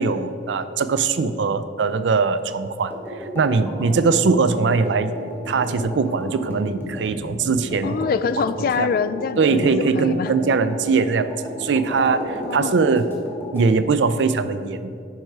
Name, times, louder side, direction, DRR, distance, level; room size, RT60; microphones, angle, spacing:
voice 1, 0.0-2.9 3.3-5.1 5.5-8.1 8.8-8.9 9.4-11.3 11.6-13.1 13.5-14.9, right 4 dB, 80° right, 12 dB, 0.4 m, -21 dB
sound 1, 2.9-13.7, left 1 dB, 15° left, 1.4 m, -34 dB
voice 2, 7.8-10.3 12.4-12.7, left 6 dB, 55° left, 14 dB, 0.3 m, -25 dB
9.5 x 5.5 x 4.6 m, 2.4 s
head